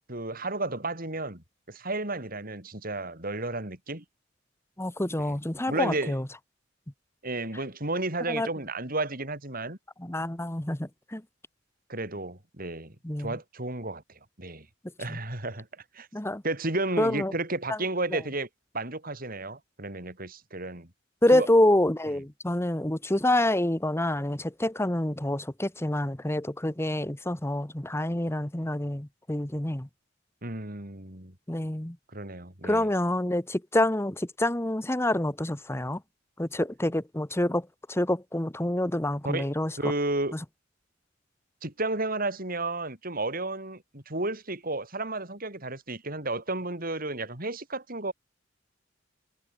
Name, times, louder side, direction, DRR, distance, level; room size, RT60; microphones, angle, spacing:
voice 1, 0.1-4.0 5.7-6.2 7.2-9.8 11.9-14.7 15.0-15.7 15.9-16.1 16.4-18.5 18.7-20.9 21.3-21.5 30.4-31.3 32.1-32.9 39.2-40.4 41.6-48.1, right 2 dB, 50° right, 6.1 m, -32 dB
voice 2, 4.8-6.3 8.3-8.5 10.0-11.2 13.0-13.4 15.1-15.2 16.1-16.4 17.0-17.3 17.7-17.8 18.1-18.2 21.2-29.9 31.5-32.0 32.6-36.0 36.4-39.7, left 1 dB, 15° left, 1.2 m, -27 dB
head